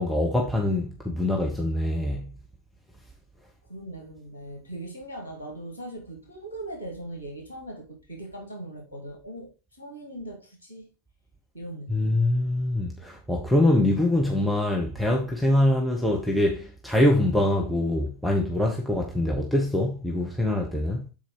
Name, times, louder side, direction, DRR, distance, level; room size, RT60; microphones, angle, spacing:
voice 1, 0.0-2.3 11.9-21.0, left 1 dB, ahead, 1.1 m, -24 dB
voice 2, 3.7-9.5 9.8-10.9 11.5-12.2, right 1 dB, 80° right, 2.0 m, -40 dB
7.2 x 4.5 x 4.7 m
figure-of-eight pair, 90°, 0 cm